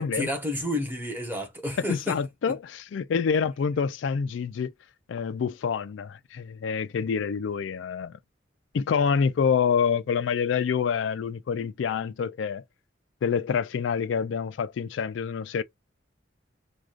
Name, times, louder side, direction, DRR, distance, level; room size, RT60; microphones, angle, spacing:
voice 1, 0.0-2.2 2.5-2.6, left 1 dB, 10° right, 1.1 m, -31 dB
voice 2, 1.9-4.7 5.1-8.2 8.7-12.6 13.2-15.6, left 6 dB, 80° left, 0.4 m, -27 dB
6.1 x 2.3 x 2.4 m
head